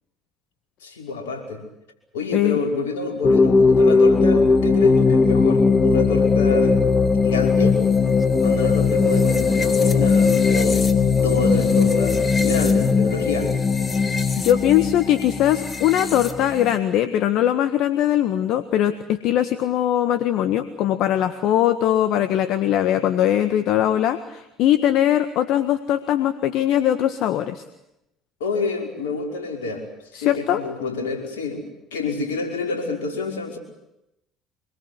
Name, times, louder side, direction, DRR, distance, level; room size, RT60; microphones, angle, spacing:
voice 1, 0.8-1.6 2.1-6.8 7.2-7.8 8.4-14.1 28.4-29.8 30.1-33.6, left 3 dB, 80° left, 3 dB, 5.5 m, -28 dB
sound 1, 3.2-16.8, left 4 dB, 30° left, 2.6 m, -18 dB
voice 2, 14.4-18.9 19.2-27.6 30.1-30.6, left 11 dB, 60° left, 10 dB, 1.6 m, -20 dB
25.5 x 23.0 x 8.3 m, 0.86 s
hypercardioid pair, 65°, 0 cm